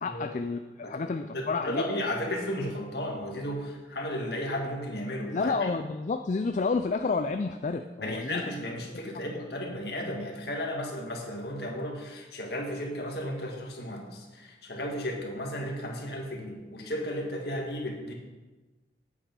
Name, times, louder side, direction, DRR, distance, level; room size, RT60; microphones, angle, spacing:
voice 1, 0.0-1.8 5.3-8.4, left 4 dB, 40° left, 7 dB, 0.4 m, -30 dB
voice 2, 1.3-5.5 8.0-18.1, left 1 dB, 60° left, 1 dB, 1.9 m, -34 dB
8.6 x 8.4 x 5.3 m, 1.2 s
head